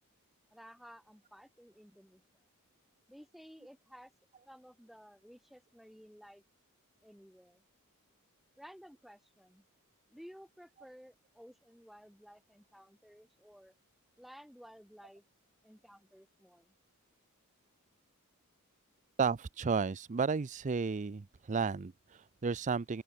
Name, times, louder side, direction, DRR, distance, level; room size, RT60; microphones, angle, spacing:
voice 1, 0.5-2.4 3.1-4.1 4.4-6.4 7.0-7.6 8.6-9.6 10.1-13.7 14.2-15.2 15.6-16.8, equal, ahead, 7.8 m, -55 dB
voice 2, 19.2-23.0, right 5 dB, 35° right, 0.5 m, -33 dB
open air
head